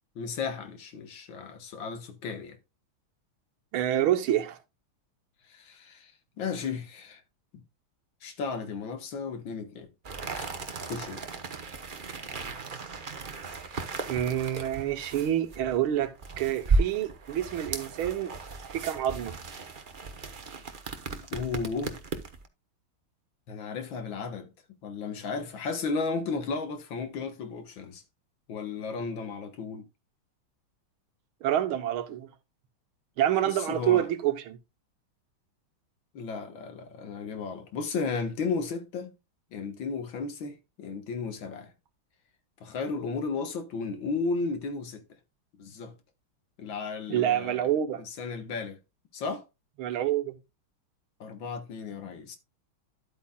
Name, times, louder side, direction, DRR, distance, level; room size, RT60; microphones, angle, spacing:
voice 1, 0.2-2.6 5.5-6.1 6.4-7.2 7.5-7.6 8.2-9.9 10.3-10.5 10.8-11.3 21.1-22.0 23.5-24.5 24.8-28.0 28.5-29.8 33.4-34.1 36.1-39.1 39.5-41.7 42.6-45.0 45.6-45.9 46.6-47.6 48.0-48.8 49.1-49.4 51.2-52.4, left 4 dB, 70° left, 2.0 m, -34 dB
voice 2, 3.7-4.6 14.1-18.3 18.7-19.4 31.4-32.3 33.2-34.6 47.1-48.0 49.8-50.4, right 11 dB, 80° right, 1.8 m, -27 dB
sound 1, 10.0-22.5, right 3 dB, 40° right, 0.7 m, -35 dB
11.5 x 8.4 x 2.3 m
omnidirectional pair, 2.3 m